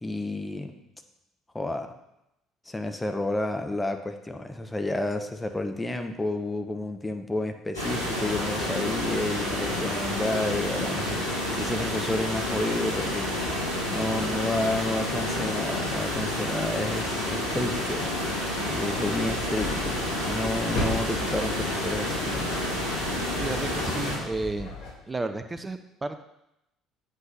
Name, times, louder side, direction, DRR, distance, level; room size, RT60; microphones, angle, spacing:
voice 1, 0.0-0.7 1.5-1.9 2.7-11.2 11.6-13.3 13.9-18.1 18.7-22.6, left 1 dB, 15° left, 7 dB, 0.9 m, -30 dB
sound 1, 7.7-24.2, left 1 dB, 90° left, 1.8 m, -29 dB
sound 2, 18.9-24.9, left 1 dB, 55° left, 1.9 m, -36 dB
voice 2, 23.4-24.7 25.1-26.2, right 2 dB, 20° right, 9 dB, 0.6 m, -32 dB
8.0 x 5.3 x 5.2 m, 0.87 s
figure-of-eight pair, 55°, 0 cm